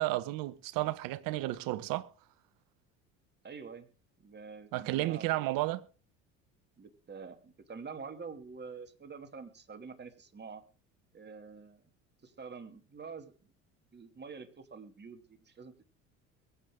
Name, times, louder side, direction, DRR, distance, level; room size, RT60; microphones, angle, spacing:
voice 1, 0.0-2.1 4.7-5.8, right 17 dB, 65° right, 1.2 m, -32 dB
voice 2, 3.4-3.9 4.2-5.6 6.8-10.6 11.1-11.8 12.2-13.3 13.9-15.9, right 5 dB, 30° right, 2.8 m, -47 dB
23.0 x 8.5 x 3.8 m
hypercardioid pair, 70°, 37 cm